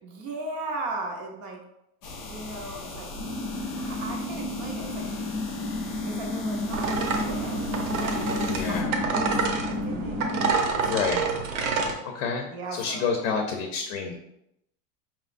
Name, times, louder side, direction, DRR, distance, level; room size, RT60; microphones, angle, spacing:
voice 1, 0.0-1.6 2.3-3.1 3.8-5.3 6.0-9.3 9.8-11.2 12.5-13.3, right 2 dB, 35° right, 1 dB, 0.6 m, -37 dB
sound 1, 2.0-8.8, left 2 dB, 30° left, 0.4 m, -39 dB
sound 2, 3.1-10.5, left 2 dB, 15° left, 0.8 m, -31 dB
sound 3, 6.7-11.9, right 4 dB, 60° right, 0.8 m, -28 dB
voice 2, 8.5-9.0 10.8-11.3 12.0-14.1, left 6 dB, 60° left, 3 dB, 0.7 m, -29 dB
5.2 x 3.0 x 2.5 m, 0.81 s
supercardioid pair, 170°, 44 cm